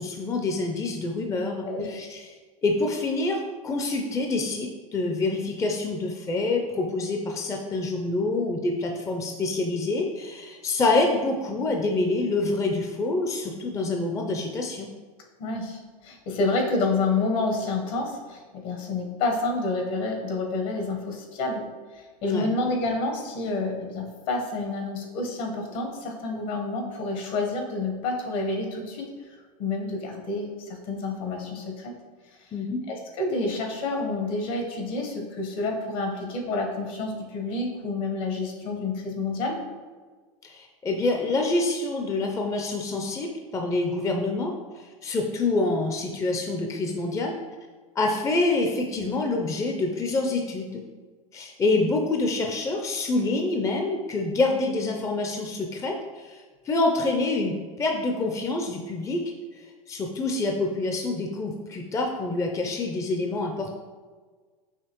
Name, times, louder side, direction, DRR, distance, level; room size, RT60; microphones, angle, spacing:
voice 1, 0.0-2.2 2.6-14.9 22.2-22.5 32.5-32.8 40.4-47.4 48.0-50.8 51.3-59.2 59.6-63.7, left 2 dB, 15° left, 2 dB, 0.4 m, -27 dB
voice 2, 15.4-21.7 21.9-29.0 29.6-31.9 32.4-32.5 32.9-39.5, left 3 dB, 60° left, 2 dB, 1.1 m, -29 dB
5.6 x 3.0 x 3.0 m, 1.4 s
hypercardioid pair, 100°, 19 cm